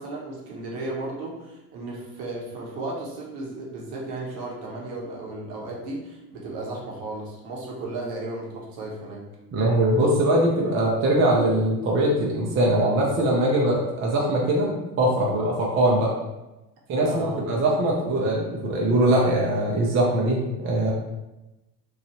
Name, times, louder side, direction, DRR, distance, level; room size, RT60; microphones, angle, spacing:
voice 1, 0.0-9.2 17.0-17.5, right 2 dB, 60° right, -3 dB, 1.1 m, -34 dB
voice 2, 9.5-16.1 16.9-20.9, right 1 dB, 25° right, -2 dB, 0.6 m, -22 dB
3.0 x 2.3 x 2.9 m, 1.0 s
hypercardioid pair, 75°, 47 cm